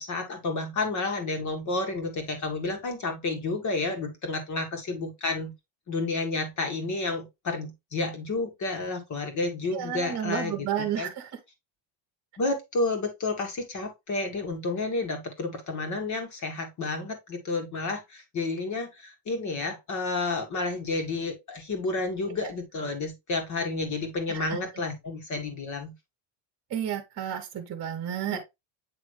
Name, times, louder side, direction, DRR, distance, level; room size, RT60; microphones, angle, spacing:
voice 1, 0.0-5.5 5.9-10.6 11.0-11.1 12.4-25.9 28.3-28.4, left 3 dB, 35° left, 2.1 m, -31 dB
voice 2, 9.7-11.3 22.3-22.5 24.3-24.6 26.7-28.4, right 10 dB, 30° right, 1.2 m, -32 dB
8.6 x 3.4 x 3.2 m
cardioid pair, 150°, 50 cm